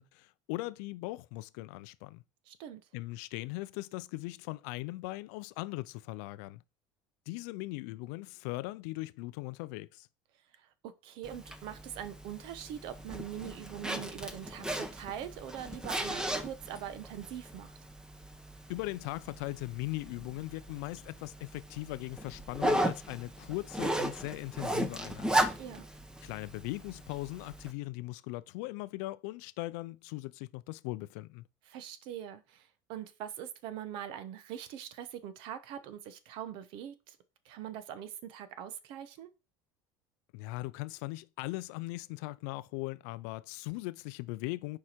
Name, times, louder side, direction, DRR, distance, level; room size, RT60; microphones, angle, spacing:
voice 1, 0.0-2.2 2.9-6.6 7.3-10.1 18.7-25.4 26.2-31.4 40.3-44.8, left 20 dB, 80° left, 0.4 m, -39 dB
voice 2, 2.5-2.8 10.6-17.8 25.6-25.9 31.7-37.2 37.4-39.3, right 10 dB, 65° right, 0.9 m, -43 dB
Zipper (clothing), 11.2-27.7, right 1 dB, 10° right, 0.9 m, -36 dB
6.6 x 4.8 x 4.4 m
supercardioid pair, 120°, 9 cm